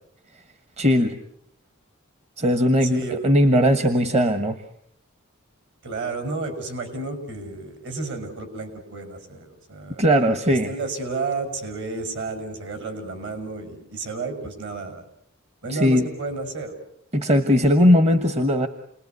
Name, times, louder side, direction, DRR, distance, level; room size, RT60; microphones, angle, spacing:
voice 1, 0.8-1.2 2.4-4.6 10.0-10.7 15.7-16.1 17.1-18.7, equal, 30° right, 10 dB, 1.3 m, -19 dB
voice 2, 2.8-3.2 5.8-10.0 10.5-15.0 15.6-16.7, right 3 dB, 55° right, 7 dB, 6.3 m, -32 dB
29.5 x 21.0 x 9.5 m, 0.72 s
head